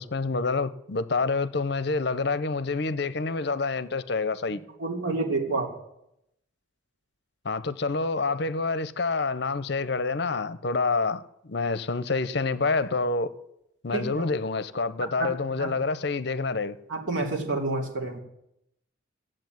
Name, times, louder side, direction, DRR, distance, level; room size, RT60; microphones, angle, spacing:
voice 1, 0.0-4.6 7.4-13.3 13.8-16.8, left 3 dB, 60° left, 0.6 m, -27 dB
voice 2, 4.5-5.7 13.9-14.2 15.0-15.3 15.6-15.7 16.9-18.2, right 3 dB, 80° right, 3.1 m, -29 dB
15.0 x 7.7 x 9.3 m
head